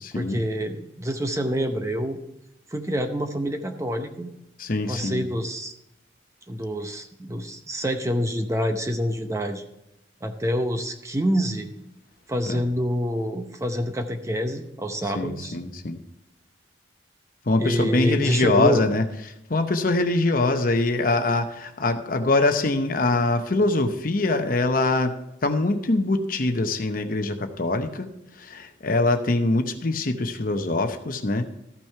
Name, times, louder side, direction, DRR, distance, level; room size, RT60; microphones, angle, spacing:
voice 1, 0.1-2.2 2.7-4.3 4.9-5.7 6.5-9.6 10.2-11.7 12.3-15.6 17.6-18.8, equal, 15° right, 6 dB, 0.7 m, -27 dB
voice 2, 4.6-5.3 12.5-12.6 15.1-16.0 17.5-19.0 19.5-28.1 28.4-31.5, left 2 dB, 45° left, 7 dB, 0.8 m, -23 dB
14.0 x 6.0 x 4.5 m, 0.89 s
head